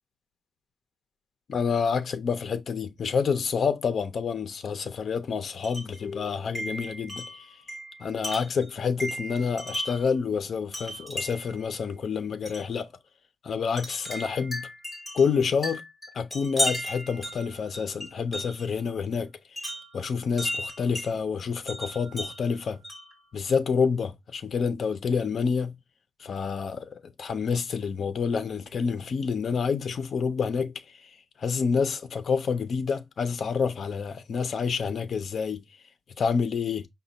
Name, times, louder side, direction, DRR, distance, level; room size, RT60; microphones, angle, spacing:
voice 1, 1.5-7.5 8.0-12.9 13.4-14.7 15.1-15.8 16.1-19.3 19.9-22.8 23.3-25.8 26.2-30.8 31.4-35.6 36.2-36.9, left 6 dB, 50° left, 0.5 m, -28 dB
Wind chime, 5.6-6.0 6.5-10.1 10.7-11.6 12.4-12.7 13.8-18.7 19.6-21.1 21.7-23.2, equal, 5° left, 1.6 m, -35 dB
5.2 x 2.2 x 3.9 m
wide cardioid pair, 180°, 0 cm